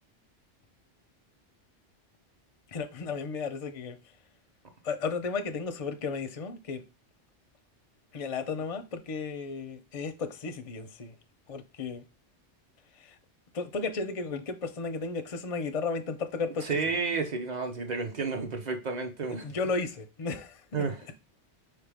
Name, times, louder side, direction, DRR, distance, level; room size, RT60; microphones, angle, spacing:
voice 1, 2.7-4.0 4.8-6.8 8.1-11.2 11.5-12.0 13.0-13.2 13.5-16.7 19.4-20.8, left 4 dB, 45° left, 0.5 m, -34 dB
voice 2, 16.6-19.5 20.7-21.0, right 4 dB, 40° right, 0.8 m, -31 dB
4.4 x 3.3 x 3.4 m
omnidirectional pair, 1.2 m